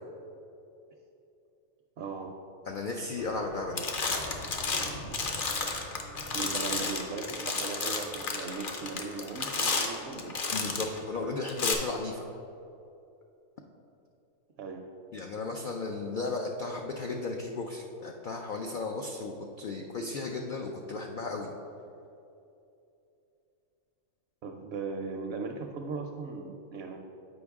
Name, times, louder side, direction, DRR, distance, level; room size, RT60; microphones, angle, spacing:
voice 1, 2.0-2.4 6.3-10.4 14.6-14.8 24.4-27.0, right 4 dB, 65° right, 3 dB, 0.7 m, -38 dB
voice 2, 2.7-3.8 10.5-12.2 15.1-21.5, left 3 dB, 70° left, 1 dB, 0.4 m, -35 dB
sound 1, 3.3-3.5 3.8-11.0 11.5-11.7, left 4 dB, 50° left, 0.8 m, -32 dB
8.0 x 5.1 x 3.5 m, 2.8 s
omnidirectional pair, 1.4 m